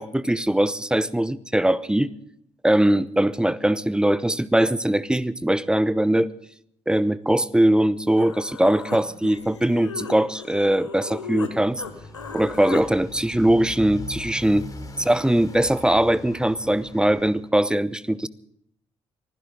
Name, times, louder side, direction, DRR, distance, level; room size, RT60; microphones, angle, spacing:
voice 1, 0.0-2.1 2.6-6.3 6.9-11.8 12.3-14.6 15.0-18.3, right 1 dB, 5° right, 18 dB, 0.8 m, -21 dB
Human voice, 7.8-7.9 8.2-11.5 11.8-12.9, left 5 dB, 90° left, 1.1 m, -37 dB
Motorcycle, 11.5-17.4, left 2 dB, 25° left, 3.1 m, -40 dB
24.5 x 15.5 x 3.8 m, 0.71 s
figure-of-eight pair, 45°, 15 cm